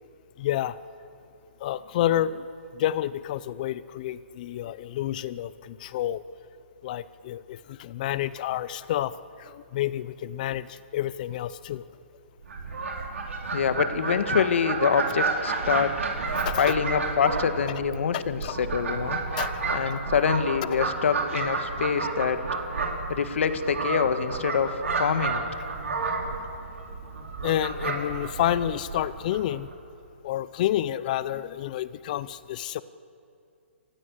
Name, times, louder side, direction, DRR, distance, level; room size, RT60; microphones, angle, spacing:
voice 1, 0.4-0.8 1.6-2.5 2.7-6.2 6.8-9.1 9.4-11.8 16.3-16.7 18.1-18.6 19.4-19.5 27.4-29.7 30.2-32.8, left 12 dB, 40° left, 16 dB, 0.7 m, -29 dB
Fowl, 12.4-29.7, right 4 dB, 85° right, 4.4 m, -31 dB
voice 2, 13.5-16.1 16.5-19.2 19.7-22.5 23.1-25.4, left 6 dB, 70° left, 10 dB, 1.6 m, -25 dB
29.0 x 15.0 x 8.2 m, 2.5 s
hypercardioid pair, 160°, 7 cm